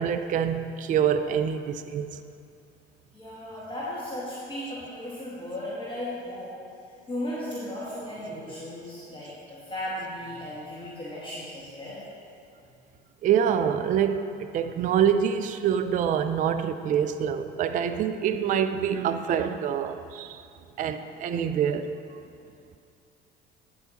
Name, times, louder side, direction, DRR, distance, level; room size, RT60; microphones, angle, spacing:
voice 1, 0.0-2.2 13.2-20.4 20.8-22.2, right 8 dB, 25° right, 10 dB, 0.4 m, -26 dB
voice 2, 3.1-6.5 7.1-12.1, left 1 dB, 15° left, -8 dB, 1.8 m, -36 dB
8.7 x 8.4 x 2.9 m, 2.5 s
figure-of-eight pair, 65°, 32 cm